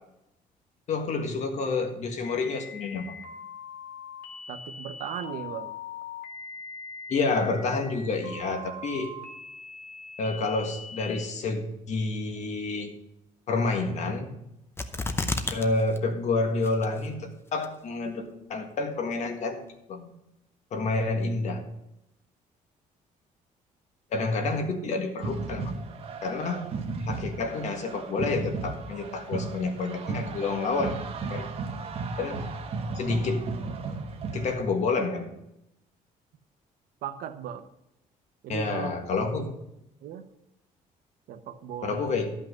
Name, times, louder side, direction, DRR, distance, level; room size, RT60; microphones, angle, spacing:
voice 1, 0.9-3.2 7.1-9.1 10.2-12.9 13.5-14.3 15.5-19.6 19.9-20.1 20.7-21.6 24.1-25.7 26.2-26.7 27.1-31.0 31.3-31.5 32.2-32.5 32.9-33.5 34.3-35.3 38.5-39.5 41.8-42.3, left 3 dB, 55° left, 5 dB, 1.7 m, -29 dB
sound 1, 2.2-11.2, left 3 dB, 75° left, 1.8 m, -42 dB
voice 2, 4.5-5.7 37.0-37.7 38.4-39.0 39.3-39.5 40.0-40.3 41.3-42.2, right 9 dB, 85° right, 10 dB, 0.9 m, -37 dB
sound 2, 14.8-15.7 16.0-16.1 16.6-17.1 17.6-17.7, left 3 dB, 15° left, 0.7 m, -29 dB
sound 3, 25.2-34.6, right 4 dB, 45° right, 1.2 m, -35 dB
12.0 x 5.7 x 6.6 m, 0.83 s
cardioid pair, 145°, 14 cm